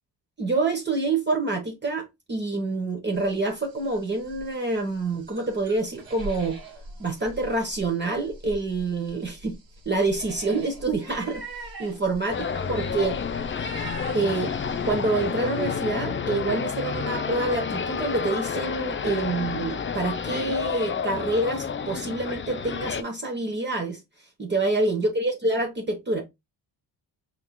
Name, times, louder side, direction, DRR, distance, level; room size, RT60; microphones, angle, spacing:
voice 1, 0.4-6.6 7.0-9.5 9.8-13.2 14.1-14.5 14.9-24.0 24.4-26.2, right 2 dB, 25° right, 1.2 m, -27 dB
sound 1, 3.1-15.8, right 1 dB, 55° right, 1.6 m, -43 dB
sound 2, 12.3-23.0, left 6 dB, 30° left, 0.5 m, -30 dB
4.6 x 3.8 x 2.2 m
cardioid pair, 75°, 42 cm